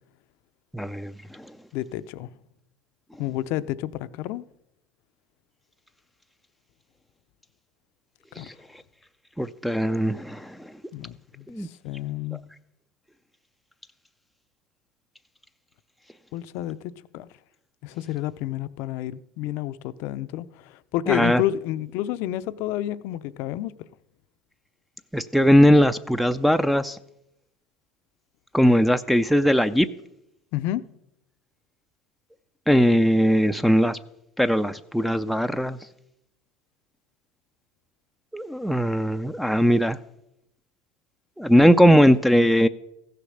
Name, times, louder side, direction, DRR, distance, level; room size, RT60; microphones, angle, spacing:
voice 1, 0.7-1.5 8.4-8.5 9.4-10.7 11.5-11.7 21.1-21.4 25.1-27.0 28.5-29.9 32.7-34.0 34.4-35.8 38.3-40.0 41.4-42.7, equal, ahead, 0.4 m, -19 dB
voice 2, 1.7-2.3 3.2-4.4 8.4-8.5 10.9-12.4 16.3-17.3 17.8-23.9 30.5-30.8, left 13 dB, 65° left, 0.5 m, -30 dB
15.0 x 6.7 x 6.4 m
supercardioid pair, 120°, 4 cm